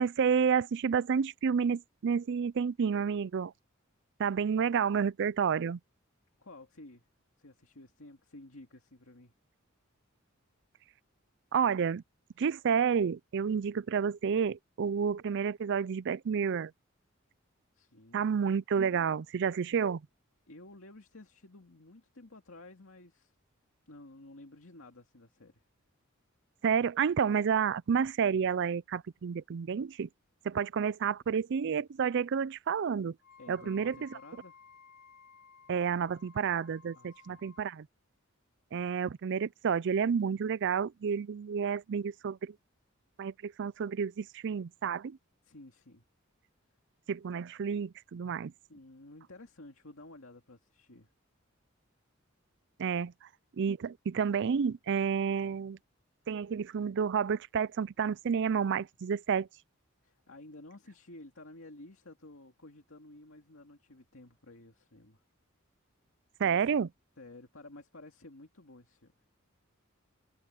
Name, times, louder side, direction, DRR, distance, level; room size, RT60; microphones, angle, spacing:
voice 1, 0.0-3.5 4.2-5.8 11.5-12.0 12.4-16.7 18.1-20.0 26.6-30.1 30.4-33.2 33.5-34.2 35.7-37.9 38.7-42.5 43.2-45.2 47.1-48.5 52.8-53.1 53.6-55.8 56.3-59.5 66.4-66.9, right 6 dB, 60° right, 0.4 m, -30 dB
voice 2, 6.4-7.0 7.4-9.3 17.7-18.3 20.5-23.3 23.9-25.6 33.4-34.6 37.0-37.5 45.4-46.0 48.7-51.1 60.0-65.2 66.4-66.7 67.2-69.1, left 2 dB, 70° left, 2.4 m, -52 dB
Wind instrument woodwind instrument, 33.2-37.7, left 5 dB, 50° left, 1.4 m, -57 dB
head